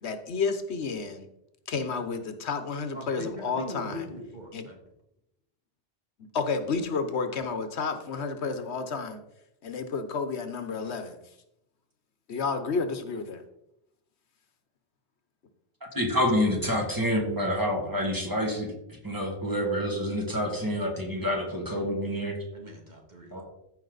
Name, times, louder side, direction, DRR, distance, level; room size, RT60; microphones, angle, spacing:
voice 1, 0.0-1.3 1.7-4.1 4.5-4.6 6.3-9.2 9.6-11.2 12.3-13.4, left 4 dB, 85° left, 9 dB, 1.3 m, -31 dB
voice 2, 2.9-4.8 22.5-23.3, left 1 dB, 45° right, 0 dB, 2.3 m, -40 dB
voice 3, 15.9-18.7 19.0-22.4 23.3-23.4, equal, 20° right, 0 dB, 2.2 m, -27 dB
14.5 x 5.2 x 4.0 m, 0.82 s
omnidirectional pair, 1.1 m